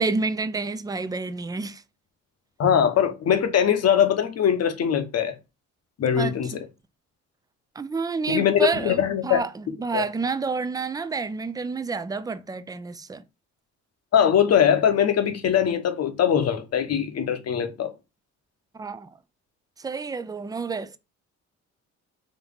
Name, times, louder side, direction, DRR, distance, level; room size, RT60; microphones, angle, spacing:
voice 1, 0.0-1.8 6.2-6.6 7.8-13.2 18.8-19.1 19.8-21.0, right 4 dB, 15° right, 0.3 m, -29 dB
voice 2, 2.6-5.3 6.0-6.7 8.3-9.4 9.9-10.1 14.1-17.9, left 8 dB, 55° left, 0.9 m, -21 dB
4.0 x 2.9 x 3.4 m
cardioid pair, 90°, 30 cm